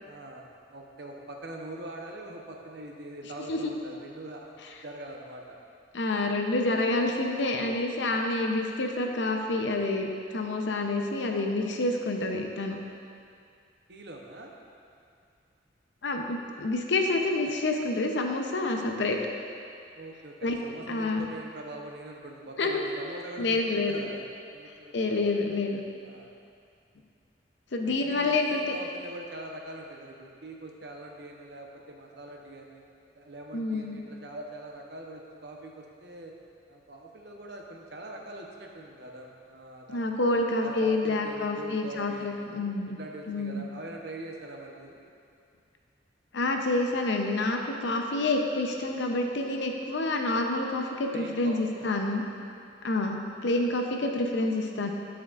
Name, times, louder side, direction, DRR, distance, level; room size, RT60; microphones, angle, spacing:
voice 1, 0.0-4.5 4.8-5.6 13.9-14.5 19.9-25.2 26.0-26.3 27.8-32.8 33.1-36.3 36.7-42.5 43.0-45.0 51.1-51.9 54.1-54.2, right 1 dB, 65° right, 0 dB, 0.8 m, -43 dB
voice 2, 5.9-12.8 16.0-19.2 20.4-20.6 20.9-21.3 22.6-22.8 23.4-24.0 24.9-25.8 27.7-28.7 33.5-34.0 39.9-43.0 43.3-43.6 46.3-52.2 52.8-54.9, left 2 dB, 80° left, 3 dB, 0.7 m, -28 dB
9.6 x 7.2 x 2.5 m, 2.4 s
head